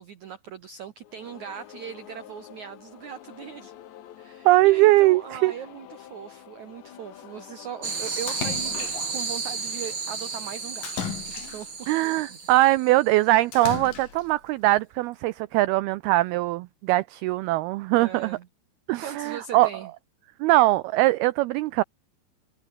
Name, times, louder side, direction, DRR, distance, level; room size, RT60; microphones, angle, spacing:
voice 1, 0.0-3.7 4.2-10.9 11.5-11.7 12.3-12.4 17.9-18.5 19.0-19.9, right 9 dB, 70° right, 1.8 m, -39 dB
sound 1, 1.0-9.9, left 11 dB, 75° left, 4.2 m, -48 dB
voice 2, 4.5-5.5 11.9-18.4 18.9-19.7 20.4-21.8, right 18 dB, 90° right, 2.2 m, -21 dB
sound 2, 7.8-12.9, right 4 dB, 30° right, 3.6 m, -33 dB
Splash splatter, 8.3-9.3 10.8-11.9 13.5-14.3, left 8 dB, 55° left, 4.1 m, -35 dB
omnidirectional pair, 5.1 m